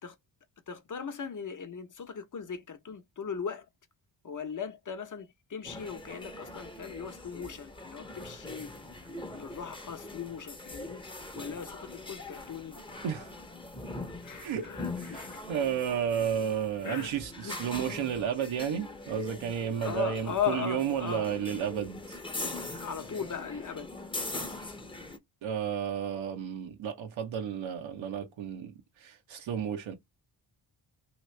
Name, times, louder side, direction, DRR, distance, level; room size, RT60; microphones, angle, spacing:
voice 1, 0.7-3.6 4.2-8.7 9.3-11.0 11.3-12.8 14.2-15.4 16.8-17.6 19.8-21.3 22.8-23.9, left 7 dB, 40° left, 0.8 m, -38 dB
sound 1, 5.6-25.2, left 2 dB, 10° left, 0.7 m, -42 dB
voice 2, 14.4-14.7 15.0-22.2 25.4-28.7 29.0-29.9, right 8 dB, 85° right, 0.8 m, -32 dB
3.0 x 2.5 x 3.1 m
cardioid pair, 60°, 46 cm